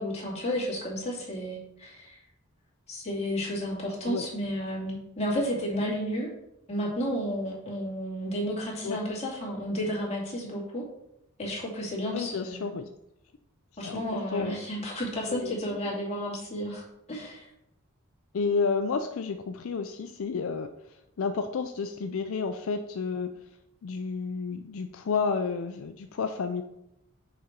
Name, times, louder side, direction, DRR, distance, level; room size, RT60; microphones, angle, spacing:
voice 1, 0.0-2.2 2.9-6.3 6.7-10.8 11.4-12.7 13.8-17.5, equal, 30° left, -4 dB, 2.5 m, -32 dB
voice 2, 12.0-12.9 13.8-14.6 15.3-15.8 18.3-23.3 23.8-26.6, left 5 dB, 70° left, 7 dB, 0.4 m, -31 dB
6.6 x 5.1 x 4.4 m, 0.81 s
head